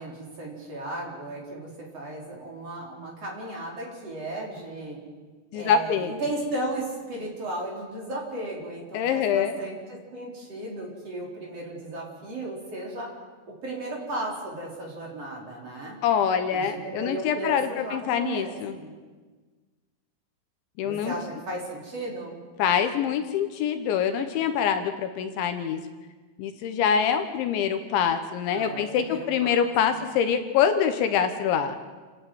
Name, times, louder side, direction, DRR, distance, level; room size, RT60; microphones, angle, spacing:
voice 1, 0.0-5.0 5.5-13.1 13.6-16.0 16.5-18.9 20.8-22.4 28.5-30.0, right 1 dB, 35° right, -2 dB, 4.6 m, -35 dB
voice 2, 5.5-6.1 8.9-9.6 16.0-18.8 20.8-21.1 22.6-25.8 26.4-31.8, left 8 dB, 75° left, 8 dB, 3.3 m, -25 dB
28.5 x 11.5 x 9.1 m, 1.4 s
omnidirectional pair, 5.6 m